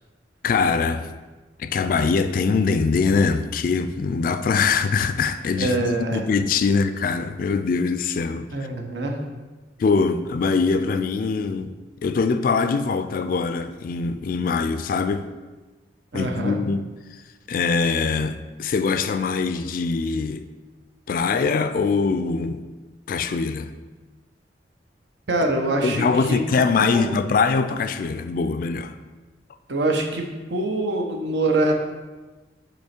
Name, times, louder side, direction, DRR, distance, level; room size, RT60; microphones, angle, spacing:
voice 1, 0.4-1.1 1.6-8.5 9.8-11.7 12.0-15.3 16.1-16.9 17.5-20.4 21.1-22.6 23.1-23.7 25.8-28.9, left 4 dB, 50° left, 0.3 m, -23 dB
voice 2, 5.6-6.2 8.5-9.2 16.1-16.6 25.3-27.1 29.7-31.7, right 2 dB, 80° right, 0.9 m, -24 dB
8.1 x 3.1 x 4.3 m
head